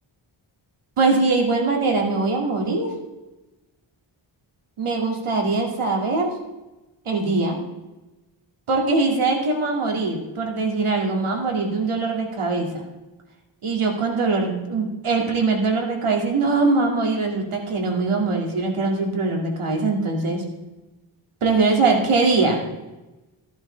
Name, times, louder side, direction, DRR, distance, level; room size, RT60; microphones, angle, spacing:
voice 1, 1.0-2.9 4.8-6.3 7.1-7.6 8.7-12.8 13.6-20.4 21.4-22.6, right 3 dB, 80° right, 1 dB, 2.4 m, -22 dB
14.5 x 11.0 x 3.4 m, 1.1 s
wide cardioid pair, 120°, 49 cm